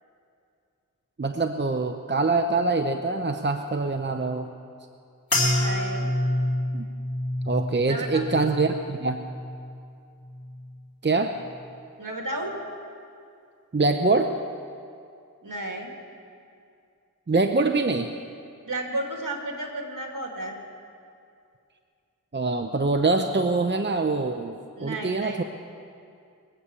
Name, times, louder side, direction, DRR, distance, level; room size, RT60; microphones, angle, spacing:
voice 1, 1.2-4.5 6.7-6.8 7.5-9.2 11.0-11.4 13.7-14.3 17.3-18.1 22.3-25.4, right 3 dB, 30° right, 6 dB, 0.7 m, -24 dB
sound 1, 5.3-9.8 10.2-10.8 11.4-11.7, left 1 dB, 80° left, 2.5 m, -28 dB
voice 2, 5.6-6.1 7.9-8.4 12.0-12.5 15.4-15.9 18.7-20.6 24.8-25.4, right 2 dB, 65° right, 1 dB, 2.3 m, -33 dB
22.0 x 8.2 x 7.1 m, 2.4 s
wide cardioid pair, 50°, 34 cm